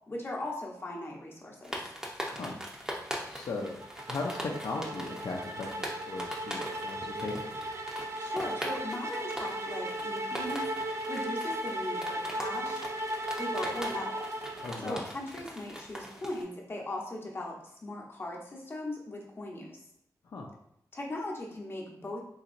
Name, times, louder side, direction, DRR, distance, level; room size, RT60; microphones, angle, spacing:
voice 1, 0.1-1.8 8.2-10.6 11.1-12.8 13.3-14.2 14.8-19.8 20.9-22.2, left 1 dB, 35° left, -2 dB, 0.8 m, -39 dB
sound 1, 1.6-16.4, equal, 10° right, 0.6 m, -42 dB
voice 2, 3.3-3.8 4.1-7.6 14.6-15.0 20.3-20.5, left 3 dB, 70° left, -1 dB, 0.5 m, -37 dB
sound 2, 3.6-15.0, right 1 dB, 40° right, 0.3 m, -36 dB
3.9 x 2.9 x 2.5 m, 0.74 s
wide cardioid pair, 85°, 7 cm